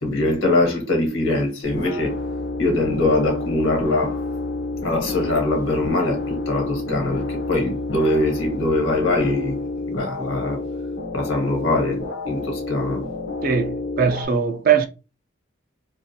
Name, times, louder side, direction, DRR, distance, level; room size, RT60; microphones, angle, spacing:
voice 1, 0.0-2.1 2.6-4.2 4.8-9.6 9.9-10.6 11.1-13.0, left 2 dB, 85° left, 1.1 m, -22 dB
sound 1, 1.6-14.3, left 2 dB, 55° left, 0.5 m, -29 dB
voice 2, 13.4-14.9, right 7 dB, 45° right, 0.4 m, -20 dB
2.5 x 2.3 x 2.7 m
head